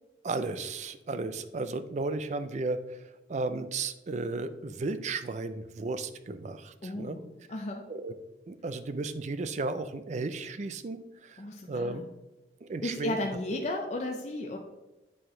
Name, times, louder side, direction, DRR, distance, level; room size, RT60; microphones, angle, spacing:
voice 1, 0.2-7.2 7.9-8.1 8.5-11.4 11.7-12.0 12.6-13.2 13.5-13.6, right 3 dB, 40° right, 12 dB, 0.4 m, -34 dB
voice 2, 6.8-7.9 11.4-12.1 12.8-14.6, left 1 dB, 40° left, 2 dB, 0.6 m, -34 dB
8.6 x 4.5 x 3.7 m, 1.0 s
head